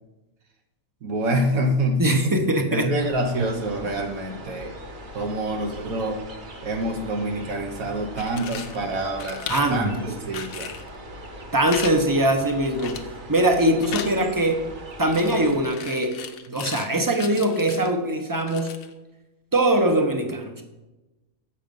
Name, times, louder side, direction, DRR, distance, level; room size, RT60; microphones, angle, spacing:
voice 1, 1.0-2.3 2.7-4.7 5.1-6.2 6.6-9.4 9.7-10.7 16.5-16.6, right 1 dB, 75° right, 2 dB, 1.3 m, -26 dB
voice 2, 2.0-2.9 3.8-3.9 9.5-10.0 11.5-13.0 13.3-14.6 15.0-16.1 16.5-18.7 19.5-20.6, right 1 dB, 20° right, 4 dB, 0.7 m, -22 dB
sound 1, 3.0-15.6, equal, 40° right, 1.1 m, -41 dB
sound 2, 8.0-8.8 9.2-9.8 10.3-10.9 11.7-11.9 12.2-12.3 12.8-13.2 13.5-14.1 15.1-16.9 17.2-17.9 18.3-18.9, left 7 dB, 75° left, 1.2 m, -36 dB
7.5 x 6.3 x 5.3 m, 1.1 s
omnidirectional pair, 1.5 m